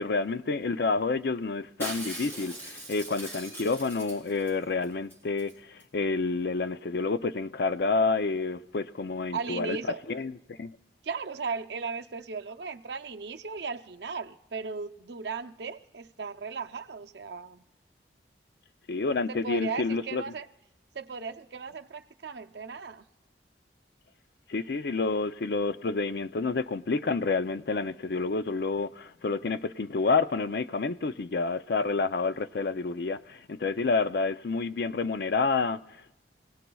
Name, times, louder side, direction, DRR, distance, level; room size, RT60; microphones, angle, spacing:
voice 1, 0.0-9.8 10.1-10.7 18.9-20.2 24.5-36.1, left 4 dB, 60° left, 0.5 m, -29 dB
Shatter, 1.8-4.5 4.8-4.9 5.1-5.5 5.8-5.9, right 1 dB, 10° left, 3.2 m, -40 dB
voice 2, 9.3-10.0 11.0-17.6 19.3-20.5 20.9-23.0, right 5 dB, 70° right, 0.6 m, -36 dB
28.5 x 17.5 x 2.3 m
head